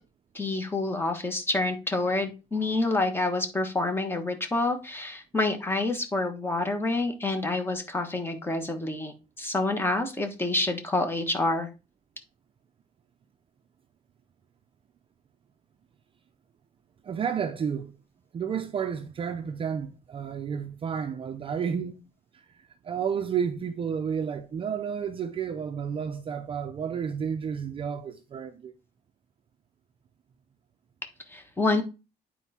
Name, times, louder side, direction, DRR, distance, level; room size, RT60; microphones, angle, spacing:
voice 1, 0.3-11.7 31.3-31.8, left 2 dB, 15° left, 1.2 m, -28 dB
voice 2, 17.0-18.0 18.3-22.0 22.3-28.7, right 7 dB, 35° right, 0.5 m, -31 dB
9.1 x 4.5 x 4.2 m
cardioid pair, 170°, 17 cm